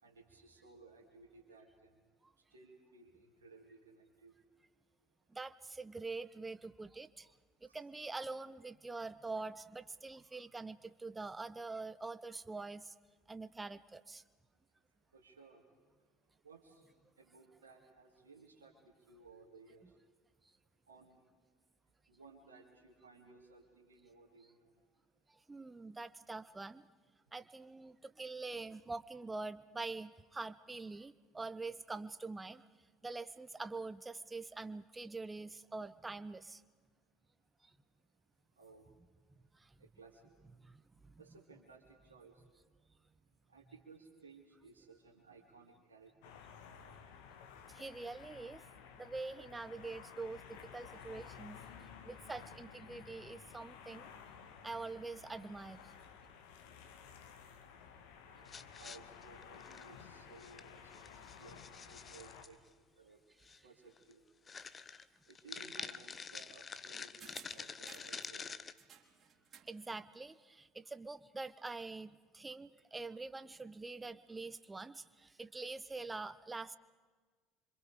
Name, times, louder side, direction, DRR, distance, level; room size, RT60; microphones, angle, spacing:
voice 1, 0.0-1.9 2.5-4.3 7.6-7.8 15.1-15.6 16.4-16.9 17.2-19.9 20.9-21.2 22.1-24.7 38.6-38.9 39.8-40.2 41.2-41.8 42.1-42.3 43.5-46.4 58.3-62.6 63.0-63.2 63.6-64.2 65.3-68.5, right 3 dB, 75° right, -1 dB, 2.5 m, -59 dB
voice 2, 5.3-7.3 7.6-12.9 13.3-14.2 25.3-26.9 27.3-32.6 33.0-36.6 37.6-37.7 39.5-39.8 40.6-41.2 47.7-48.6 49.0-54.1 54.6-55.9 69.6-76.8, right 3 dB, 15° right, 14 dB, 0.9 m, -45 dB
sound 1, 46.2-62.4, left 7 dB, 60° left, 2.0 m, -54 dB
sound 2, 58.5-60.0 60.4-60.6 60.9-62.5 63.4-63.6 64.0-64.1 64.5-68.7, left 5 dB, 25° left, 0.9 m, -47 dB
sound 3, 67.2-68.3 68.8-69.8 70.1-70.2, right 7 dB, 35° right, 3.5 m, -57 dB
26.5 x 26.0 x 4.9 m, 1.4 s
figure-of-eight pair, 65°, 0 cm